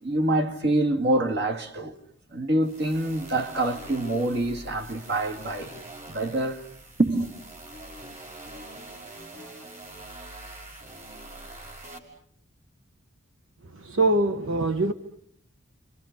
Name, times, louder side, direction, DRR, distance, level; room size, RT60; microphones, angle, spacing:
voice 1, 0.0-1.9 2.3-5.8 6.1-6.6 7.0-7.3, right 1 dB, 55° right, 2.1 m, -26 dB
sound 1, 2.6-12.0, right 1 dB, 35° right, 5.3 m, -44 dB
voice 2, 13.6-14.9, right 2 dB, 70° right, 1.1 m, -24 dB
30.0 x 27.0 x 5.9 m
head